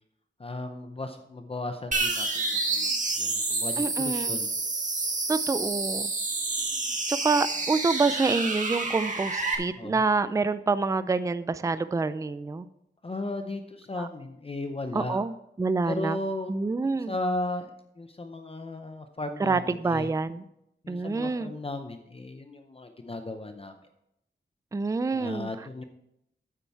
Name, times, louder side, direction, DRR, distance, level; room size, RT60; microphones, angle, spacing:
voice 1, 0.4-2.9 3.2-4.5 9.8-10.0 13.0-15.2 15.9-16.5 16.8-20.1 20.8-23.7 25.1-25.8, left 2 dB, 30° left, 6 dB, 0.7 m, -35 dB
sound 1, 1.9-9.6, right 3 dB, 40° right, 1.6 m, -29 dB
voice 2, 3.8-4.4 5.3-6.1 7.1-12.7 14.0-14.1 14.9-15.3 15.6-16.2 16.5-17.1 19.4-20.4 20.9-21.5 24.7-25.5, right 4 dB, 15° right, 13 dB, 0.4 m, -27 dB
8.9 x 8.4 x 4.6 m, 0.82 s
wide cardioid pair, 125°, 19 cm